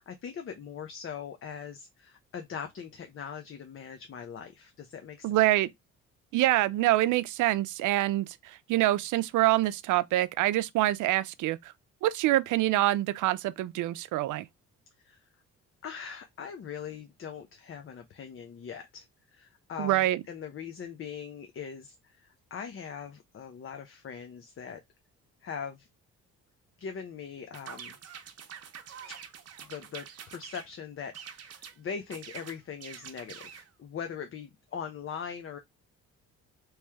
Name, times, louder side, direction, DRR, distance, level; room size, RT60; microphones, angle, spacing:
voice 1, 0.0-5.3 15.0-15.3 15.8-24.8 25.4-25.9 26.8-28.0 29.1-29.2 29.6-35.6, left 7 dB, 45° left, 0.6 m, -41 dB
voice 2, 5.2-5.7 6.3-11.7 12.0-14.5 19.8-20.2, right 15 dB, 80° right, 0.5 m, -26 dB
sound 1, 27.5-30.7 31.1-31.8 32.1-33.7, right 8 dB, 55° right, 0.8 m, -45 dB
3.1 x 3.0 x 3.4 m
cardioid pair, 90°, 30 cm